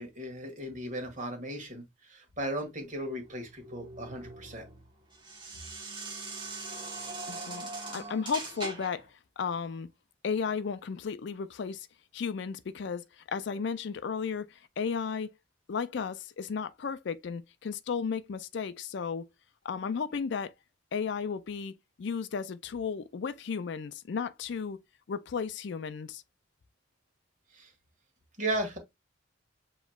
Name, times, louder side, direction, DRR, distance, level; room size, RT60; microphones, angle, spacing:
voice 1, 0.0-4.6 27.5-27.7 28.4-28.8, right 1 dB, 40° right, 1.6 m, -36 dB
sound 1, 3.2-9.1, right 3 dB, 25° right, 1.2 m, -41 dB
voice 2, 7.3-9.1 9.4-9.9 10.2-11.9 12.1-15.3 15.7-19.3 19.6-20.5 20.9-24.8 25.1-26.2, left 6 dB, 60° left, 0.4 m, -34 dB
7.1 x 3.0 x 2.3 m
head